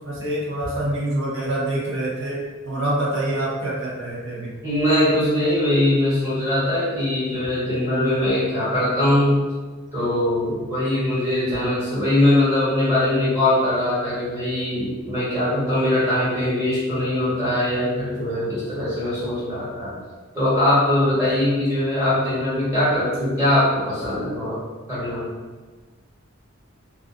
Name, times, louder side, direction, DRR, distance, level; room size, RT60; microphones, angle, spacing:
voice 1, 0.0-4.5 11.5-11.8, right 1 dB, 65° right, -5 dB, 0.7 m, -26 dB
voice 2, 4.6-9.4 9.9-19.9 20.3-24.5 24.9-25.2, left 1 dB, 15° right, -11 dB, 1.1 m, -21 dB
2.4 x 2.3 x 2.5 m, 1.3 s
head